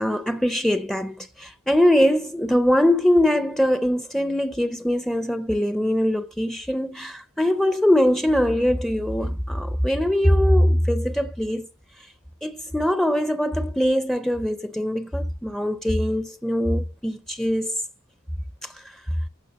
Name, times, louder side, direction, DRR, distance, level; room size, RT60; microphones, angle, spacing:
voice 1, 0.0-11.7 12.0-12.1 12.4-17.8 18.6-19.0, equal, ahead, 0.4 m, -22 dB
15.5 x 5.8 x 4.0 m
head